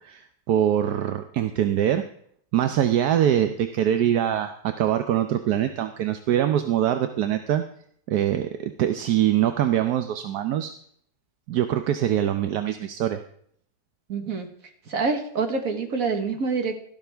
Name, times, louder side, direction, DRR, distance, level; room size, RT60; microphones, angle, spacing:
voice 1, 0.0-2.0 2.5-7.6 8.1-10.7 11.5-13.2, right 10 dB, 80° right, 8 dB, 1.2 m, -23 dB
voice 2, 14.1-14.5 14.9-16.8, right 4 dB, 60° right, 5 dB, 1.8 m, -26 dB
13.0 x 12.0 x 3.4 m, 0.63 s
omnidirectional pair, 1.7 m